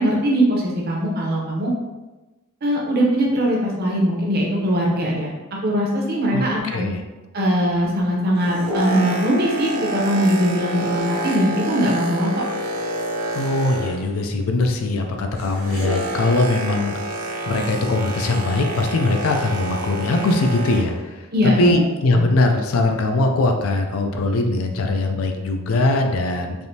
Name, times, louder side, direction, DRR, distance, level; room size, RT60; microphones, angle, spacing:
voice 1, 0.0-1.7 2.6-5.3 5.6-6.9 7.3-12.3 21.3-21.7 22.1-22.3, equal, 45° right, -2 dB, 0.7 m, -21 dB
Boat Water vehicle, 8.2-14.3 14.6-21.0 21.7-21.8, right 1 dB, 90° right, 0.6 m, -28 dB
voice 2, 13.3-16.9 17.5-26.7, left 2 dB, 75° left, 4 dB, 0.4 m, -21 dB
3.4 x 2.5 x 2.7 m, 1.1 s
head